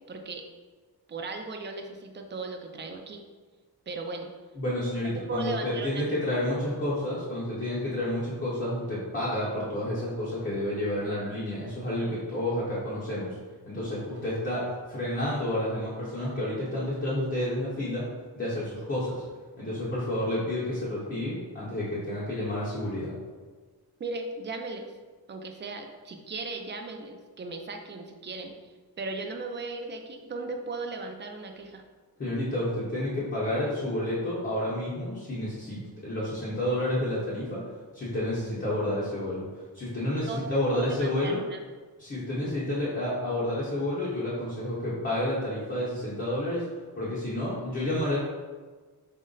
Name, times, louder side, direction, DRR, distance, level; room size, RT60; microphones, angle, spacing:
voice 1, 0.1-0.4 1.1-3.2 3.9-4.3 5.3-6.0 24.0-24.9 25.3-28.5 29.0-31.8 40.3-41.6, right 3 dB, 30° right, 3 dB, 0.4 m, -37 dB
voice 2, 4.6-13.3 13.7-18.0 18.3-19.2 19.6-23.1 32.2-37.6 37.9-41.4 42.0-46.6 47.0-48.2, left 1 dB, 30° left, -9 dB, 0.9 m, -30 dB
5.2 x 2.0 x 3.8 m, 1.4 s
wide cardioid pair, 170°, 39 cm